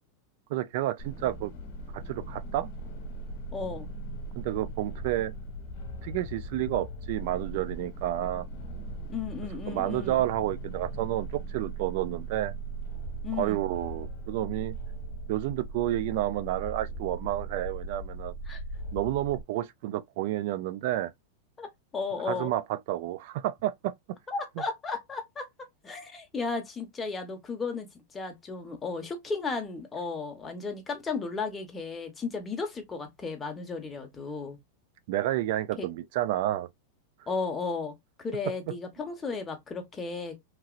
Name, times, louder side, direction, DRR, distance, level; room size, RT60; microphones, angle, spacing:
voice 1, 0.5-1.5 1.9-2.7 4.3-5.3 6.0-8.5 9.7-12.5 13.4-14.7 15.3-18.3 18.9-21.1 22.3-23.9 35.1-36.7, right 14 dB, 60° right, 0.3 m, -30 dB
Village Evil Bell Project, 1.0-19.4, right 2 dB, 55° left, 1.1 m, -39 dB
voice 2, 3.5-3.9 9.1-10.2 13.2-13.6 18.5-18.6 21.6-22.5 24.3-25.5 25.8-27.9 28.1-34.6 35.8-35.9 37.3-40.4, left 4 dB, 15° left, 0.9 m, -34 dB
2.9 x 2.8 x 2.4 m
hypercardioid pair, 130°, 0 cm